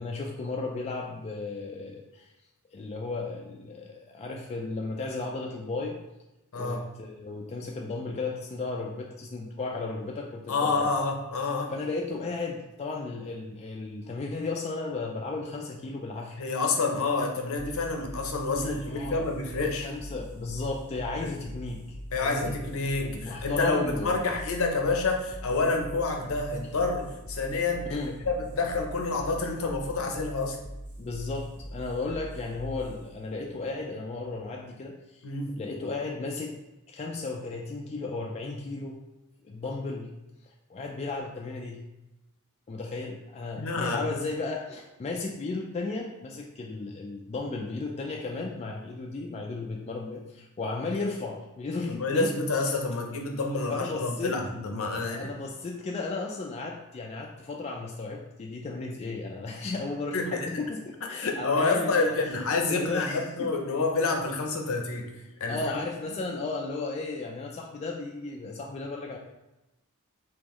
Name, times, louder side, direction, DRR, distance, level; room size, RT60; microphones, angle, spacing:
voice 1, 0.0-2.3 2.7-6.0 6.6-10.9 11.7-16.4 18.6-19.2 19.8-22.5 22.9-24.3 27.9-28.2 31.0-35.2 35.6-36.6 36.9-39.0 39.4-40.1 40.4-41.8 42.7-52.3 53.7-54.4 55.0-60.8 61.1-63.5 65.5-69.2, left 3 dB, 30° left, 0 dB, 0.3 m, -34 dB
voice 2, 6.5-6.8 10.5-11.7 16.4-19.9 22.1-28.0 28.3-30.6 35.2-35.5 43.6-44.0 51.9-55.3 60.1-60.5 61.1-65.1 65.4-65.7, left 3 dB, 65° left, 2 dB, 0.6 m, -28 dB
sound 1, 17.5-34.6, equal, 90° right, 1.0 m, -43 dB
3.7 x 3.0 x 3.0 m, 0.96 s
head